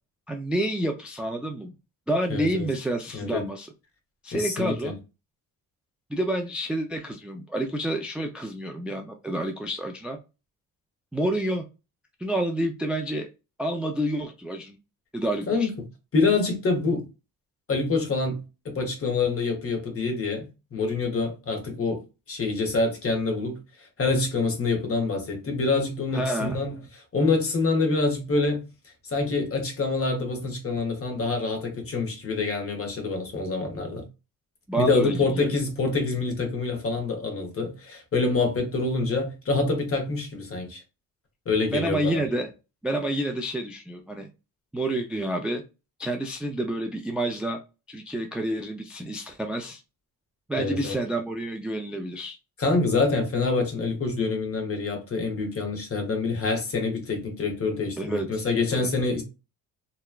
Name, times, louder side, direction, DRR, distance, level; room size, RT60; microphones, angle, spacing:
voice 1, 0.3-1.7 2.1-3.7 4.2-5.0 6.1-10.2 11.1-11.6 12.2-13.3 13.6-14.8 15.1-15.7 26.1-26.6 34.7-35.5 41.7-42.5 42.8-44.3 44.7-45.6 46.0-47.6 47.9-49.8 50.5-52.3 58.0-58.9, right 1 dB, 5° right, 0.3 m, -29 dB
voice 2, 2.3-2.7 3.1-3.5 4.3-4.9 15.5-15.8 16.1-17.1 17.7-22.0 22.3-23.6 24.0-26.8 27.1-28.6 29.0-34.0 34.8-40.8 41.5-42.2 50.6-51.0 52.6-59.2, left 3 dB, 40° left, 1.0 m, -26 dB
2.9 x 2.2 x 2.3 m
cardioid pair, 100°, 36 cm